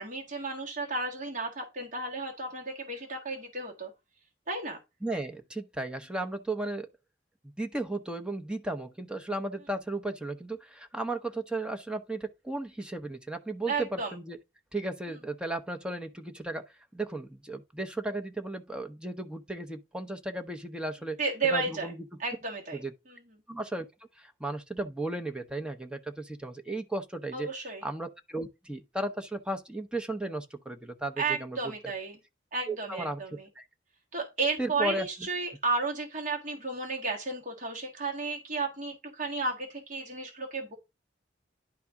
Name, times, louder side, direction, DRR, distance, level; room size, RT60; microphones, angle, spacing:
voice 1, 0.0-3.9 4.5-4.8 13.7-14.1 21.2-21.9 22.2-22.8 27.3-27.9 31.2-32.2 32.5-33.5 34.1-40.8, right 3 dB, 45° right, 1.6 m, -33 dB
voice 2, 5.0-6.9 7.6-14.4 14.7-16.6 16.9-21.2 21.5-22.0 22.7-22.9 23.5-23.9 24.2-27.5 27.8-31.6 32.6-33.2 33.6-33.7 34.6-35.1, right 2 dB, 5° right, 0.8 m, -35 dB
10.5 x 4.1 x 3.6 m
head